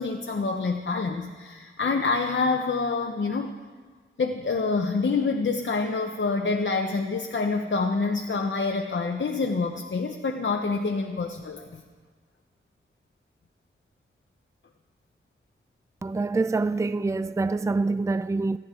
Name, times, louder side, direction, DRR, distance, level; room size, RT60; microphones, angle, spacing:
voice 1, 0.0-3.5 4.2-11.8, left 4 dB, 60° left, 0.9 m, -27 dB
voice 2, 16.0-18.6, right 3 dB, 15° right, 0.4 m, -26 dB
25.5 x 10.5 x 3.8 m
wide cardioid pair, 75°, 21 cm